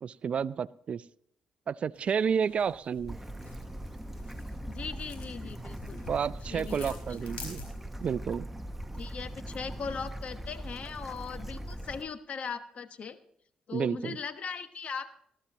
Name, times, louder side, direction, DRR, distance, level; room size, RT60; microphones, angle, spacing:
voice 1, 0.0-1.0 1.7-3.2 6.1-7.6 8.0-8.5 13.7-14.2, right 7 dB, 55° right, 17 dB, 0.4 m, -30 dB
sound 1, 1.9-8.1, left 4 dB, 80° left, 4.6 m, -49 dB
Bird / Stream, 3.1-12.0, right 1 dB, 10° right, 1.0 m, -40 dB
voice 2, 4.7-6.1 6.5-7.4 9.0-13.2 13.7-15.2, left 5 dB, 60° left, 11 dB, 1.1 m, -39 dB
19.5 x 12.5 x 3.0 m, 0.68 s
supercardioid pair, 55°, 2 cm